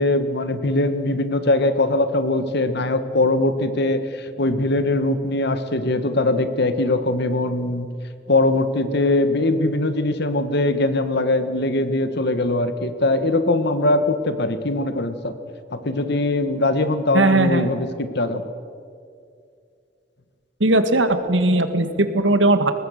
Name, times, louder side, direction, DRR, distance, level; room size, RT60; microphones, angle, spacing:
voice 1, 0.0-7.9 8.3-15.4 15.7-18.5, left 2 dB, 65° left, 10 dB, 1.6 m, -21 dB
voice 2, 17.1-17.7 20.6-22.7, right 2 dB, 85° right, 9 dB, 1.8 m, -18 dB
22.5 x 19.5 x 6.6 m, 2.4 s
head